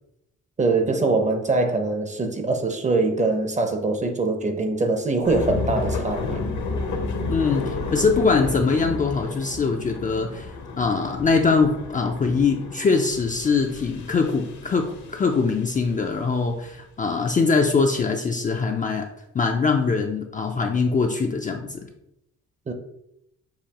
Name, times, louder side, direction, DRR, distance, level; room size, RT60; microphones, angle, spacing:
voice 1, 0.6-6.4 22.7-22.8, right 3 dB, 25° right, 0.6 m, -23 dB
sound 1, 5.2-16.8, left 3 dB, 70° left, 1.0 m, -32 dB
voice 2, 7.3-19.1 19.3-21.9, left 4 dB, 25° left, 0.4 m, -22 dB
6.6 x 2.7 x 2.9 m
cardioid pair, 90°, 30 cm